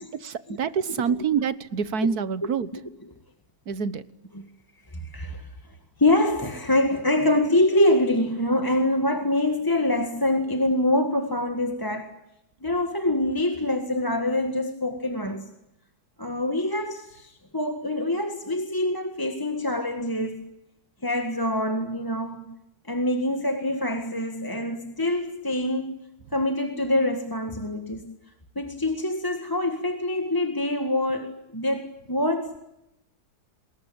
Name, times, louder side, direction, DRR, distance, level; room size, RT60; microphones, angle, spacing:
voice 1, 0.1-2.7 3.7-4.0, right 6 dB, 65° right, 15 dB, 1.7 m, -26 dB
voice 2, 2.7-3.1 4.3-4.5 4.9-5.5 6.0-12.2 12.6-15.5 16.2-20.5 21.0-22.5 22.9-26.0 26.3-28.2 28.6-32.6, left 1 dB, 15° left, 6 dB, 1.8 m, -25 dB
28.0 x 21.5 x 8.9 m, 0.86 s
omnidirectional pair, 1.8 m